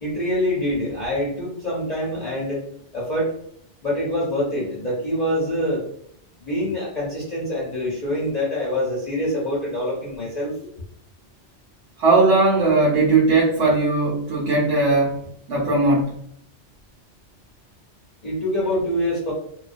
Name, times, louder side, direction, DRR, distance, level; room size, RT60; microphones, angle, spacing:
voice 1, 0.0-2.7 2.9-3.3 3.8-5.8 6.4-10.6 18.2-19.3, left 1 dB, 45° left, -6 dB, 0.6 m, -25 dB
voice 2, 12.0-15.2 15.5-16.2, right 3 dB, 90° right, -4 dB, 1.0 m, -18 dB
2.2 x 2.2 x 2.4 m, 0.68 s
omnidirectional pair, 1.2 m